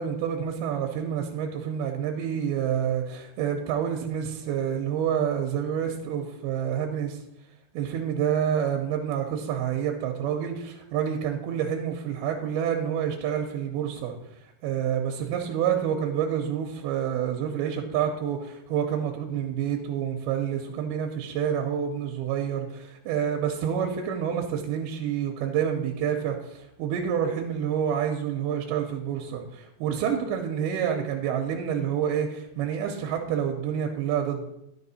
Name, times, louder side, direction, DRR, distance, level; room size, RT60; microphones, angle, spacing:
voice 1, 0.0-7.2 7.7-14.1 14.4-34.5, right 8 dB, 90° right, 2 dB, 2.7 m, -28 dB
11.0 x 5.9 x 4.2 m, 0.84 s
omnidirectional pair, 4.4 m